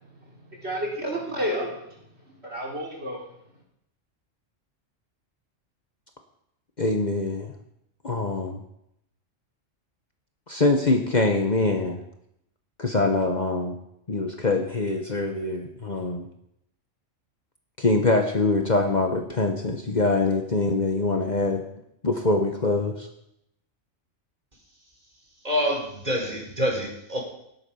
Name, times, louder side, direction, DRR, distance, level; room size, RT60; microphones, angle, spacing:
voice 1, 0.5-1.7 2.4-3.2, equal, 55° right, -3 dB, 3.8 m, -30 dB
voice 2, 6.8-7.5 8.0-8.6 10.5-12.0 12.8-13.7 14.1-16.3 17.8-21.6 22.0-23.1, left 2 dB, 35° left, 4 dB, 1.2 m, -24 dB
voice 3, 25.4-27.2, equal, 35° right, -1 dB, 4.2 m, -26 dB
18.0 x 8.2 x 5.6 m, 0.77 s
omnidirectional pair, 1.3 m